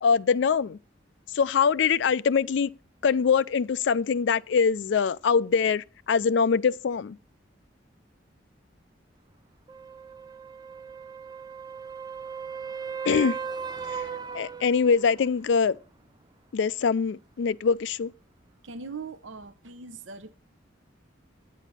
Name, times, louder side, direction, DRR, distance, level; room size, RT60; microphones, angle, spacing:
voice 1, 0.0-0.8 1.3-2.7 3.0-7.2 13.0-13.4 13.9-14.1 14.3-15.8 16.5-18.1, left 6 dB, 70° left, 0.4 m, -23 dB
sound 1, 9.7-15.3 19.4-19.5, right 6 dB, 20° right, 0.4 m, -37 dB
voice 2, 18.6-20.3, right 4 dB, 80° right, 0.7 m, -40 dB
9.2 x 9.0 x 4.1 m
head